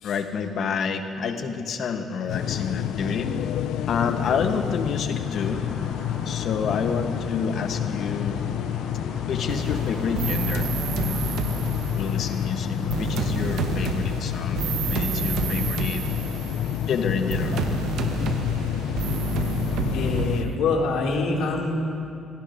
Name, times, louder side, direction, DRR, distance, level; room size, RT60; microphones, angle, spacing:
voice 1, 0.0-3.3 3.9-5.6 6.3-8.4 9.3-10.7 11.0-11.2 12.0-12.7 13.0-16.0 16.9-17.6, left 5 dB, 45° left, 7 dB, 0.9 m, -28 dB
sound 1, 2.3-20.5, left 10 dB, 70° left, 0.3 m, -29 dB
sound 2, 5.2-13.2, equal, ahead, 2.9 m, -42 dB
sound 3, 9.5-12.2 12.9-16.8 17.3-20.6, right 6 dB, 75° right, 1.0 m, -29 dB
voice 2, 19.9-21.8, left 4 dB, 90° left, -1 dB, 2.3 m, -25 dB
25.0 x 17.0 x 2.6 m, 2.6 s
cardioid pair, 180°, 0 cm